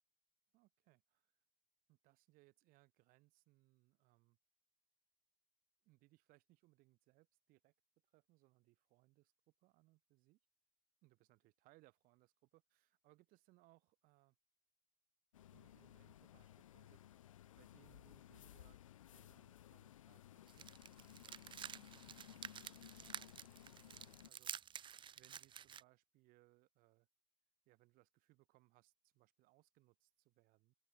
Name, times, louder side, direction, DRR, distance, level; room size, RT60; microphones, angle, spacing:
voice 1, 0.5-1.4 1.9-4.4 5.8-7.7 8.1-10.4 11.0-14.4 15.5-17.0 17.5-18.8 19.1-24.9 25.1-27.1 27.6-30.7, right 21 dB, 60° right, 4.9 m, -72 dB
sound 1, 15.3-24.3, left 12 dB, 90° left, 1.9 m, -59 dB
sound 2, 20.5-25.8, right 8 dB, 30° right, 0.7 m, -51 dB
open air
hypercardioid pair, 85°, 16 cm